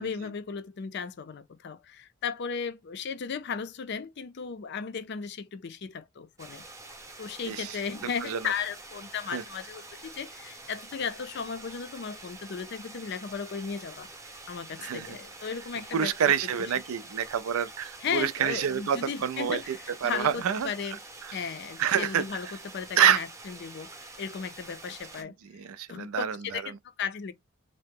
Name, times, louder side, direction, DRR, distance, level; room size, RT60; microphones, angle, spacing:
voice 1, 0.0-6.6 7.2-14.1 14.5-16.7 18.0-19.7 20.0-21.0 21.3-23.9 24.2-25.3 25.9-27.3, left 6 dB, 50° left, 0.4 m, -35 dB
sound 1, 6.4-25.2, right 2 dB, 15° right, 0.7 m, -47 dB
voice 2, 7.5-7.8 8.2-8.5 9.3-9.4 14.8-15.2 15.9-20.7 21.2-21.5 21.8-22.2 23.0-23.2 25.2-26.8, right 8 dB, 85° right, 0.4 m, -28 dB
2.8 x 2.0 x 3.5 m
head